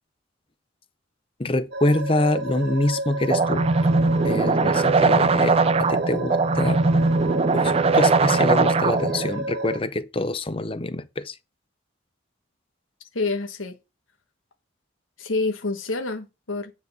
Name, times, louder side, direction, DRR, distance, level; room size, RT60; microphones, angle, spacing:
voice 1, 1.4-3.6 4.2-6.8 7.5-11.3, left 2 dB, 25° left, 0.7 m, -25 dB
sound 1, 1.7-9.8, right 2 dB, 55° right, 1.0 m, -31 dB
sound 2, 3.3-9.3, right 3 dB, 30° right, 0.4 m, -20 dB
voice 2, 13.1-13.7 15.2-16.7, left 3 dB, 85° left, 1.3 m, -27 dB
9.5 x 4.0 x 6.8 m
head